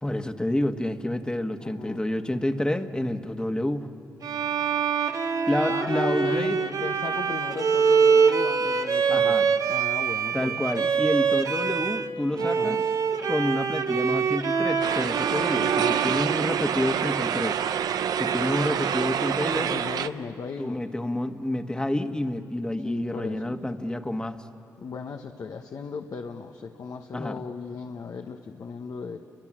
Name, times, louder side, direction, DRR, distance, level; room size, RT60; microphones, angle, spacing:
voice 1, 0.0-3.9 5.5-6.6 9.1-9.5 10.3-12.8 13.3-17.6 18.2-19.7 20.6-24.4 27.1-27.4, left 1 dB, 15° left, 7 dB, 1.5 m, -28 dB
voice 2, 1.6-2.1 5.7-10.9 12.4-12.8 15.6-16.2 19.6-20.8 22.8-23.6 24.8-29.2, left 5 dB, 65° left, 4 dB, 1.1 m, -37 dB
Bowed string instrument, 4.2-12.1 12.4-17.2, right 6 dB, 65° right, 1.1 m, -25 dB
sound 1, 14.8-20.1, right 8 dB, 80° right, 0.6 m, -27 dB
30.0 x 23.5 x 7.5 m, 2.7 s
cardioid pair, 55°, 7 cm